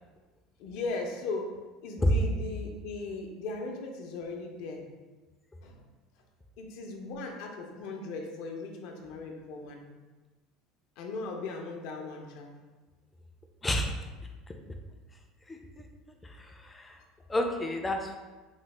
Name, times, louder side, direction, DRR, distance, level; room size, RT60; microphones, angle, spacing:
voice 1, 0.6-1.6 1.8-4.8 5.6-5.8 6.6-9.8 11.0-12.5, left 3 dB, 70° left, 2 dB, 0.5 m, -38 dB
voice 2, 15.5-15.8 16.6-16.9 17.3-18.2, left 1 dB, 15° left, 4 dB, 0.3 m, -29 dB
3.9 x 2.0 x 3.2 m, 1.3 s
cardioid pair, 140°, 0 cm